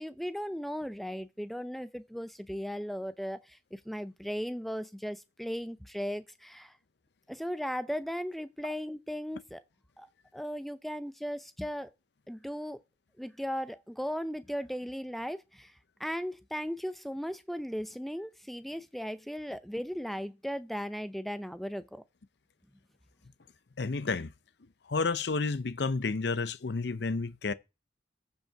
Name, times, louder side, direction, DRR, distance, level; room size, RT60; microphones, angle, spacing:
voice 1, 0.0-6.7 7.3-9.6 10.0-11.9 12.3-12.8 13.2-15.7 16.0-22.0, equal, ahead, 0.5 m, -37 dB
voice 2, 23.8-24.3 24.9-27.5, left 4 dB, 65° left, 0.6 m, -31 dB
15.0 x 5.4 x 4.6 m
head